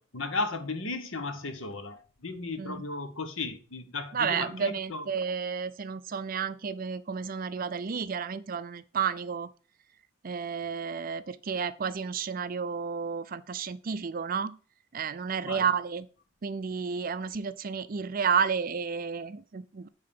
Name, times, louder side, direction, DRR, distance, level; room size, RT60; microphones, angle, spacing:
voice 1, 0.0-5.1 15.4-15.7, left 3 dB, 75° left, 1.2 m, -35 dB
voice 2, 4.1-9.5 10.2-14.6 14.9-16.1 16.4-19.9, right 6 dB, 45° right, 0.5 m, -31 dB
8.8 x 3.8 x 7.0 m
head